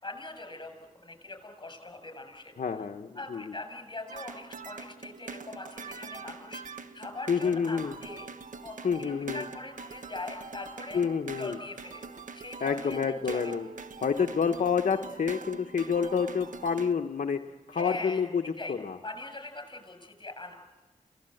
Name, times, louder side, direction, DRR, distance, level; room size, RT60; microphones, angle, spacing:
voice 1, 0.0-0.7 1.0-2.5 3.1-6.6 6.9-8.3 8.6-11.0 11.4-12.1 12.3-13.0 13.2-13.5 17.7-18.3 18.6-18.7 19.0-20.5, left 2 dB, 30° left, 7 dB, 7.2 m, -41 dB
voice 2, 2.6-3.4 7.3-7.9 8.8-9.4 10.9-11.6 12.6-13.7 14.0-17.4 17.7-18.4 18.7-19.0, left 6 dB, 70° left, 4 dB, 0.9 m, -28 dB
sound 1, 4.1-16.9, right 4 dB, 70° right, 1.3 m, -43 dB
28.0 x 18.0 x 7.8 m, 1.2 s
cardioid pair, 55°, 14 cm